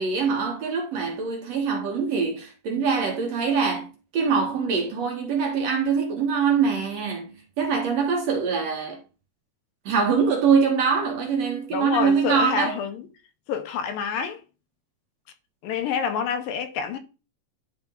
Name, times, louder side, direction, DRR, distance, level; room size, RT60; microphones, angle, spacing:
voice 1, 0.0-9.0 9.9-12.8, right 5 dB, 60° right, 2.0 m, -24 dB
voice 2, 11.7-13.1 13.5-14.4 15.6-17.0, left 6 dB, 80° left, 2.6 m, -27 dB
10.5 x 3.6 x 3.7 m
omnidirectional pair, 3.9 m